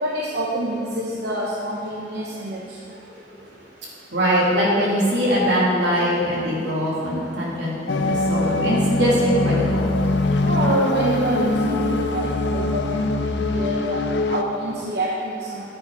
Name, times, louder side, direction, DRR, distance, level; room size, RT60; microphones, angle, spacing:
voice 1, 0.0-2.6 10.4-14.0 14.3-15.6, right 1 dB, 60° right, -4 dB, 1.1 m, -26 dB
voice 2, 4.1-9.9, equal, 75° right, -5 dB, 2.8 m, -22 dB
sound 1, 7.9-14.4, left 2 dB, 80° left, 0.6 m, -23 dB
9.7 x 9.4 x 4.8 m, 2.4 s
head